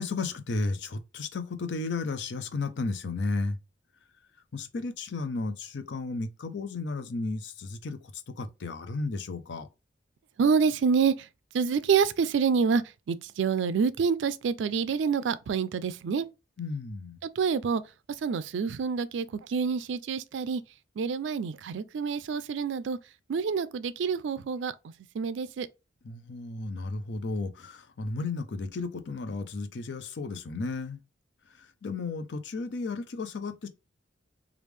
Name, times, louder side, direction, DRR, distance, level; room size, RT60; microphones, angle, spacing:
voice 1, 0.0-3.6 4.5-9.7 16.6-17.2 26.0-31.0 31.8-33.7, left 3 dB, 70° left, 0.5 m, -33 dB
voice 2, 10.4-11.3 11.5-16.3 17.2-17.8 18.1-20.6 21.0-23.0 23.3-24.7 25.1-25.7, right 6 dB, 80° right, 0.4 m, -27 dB
3.4 x 2.4 x 3.1 m
head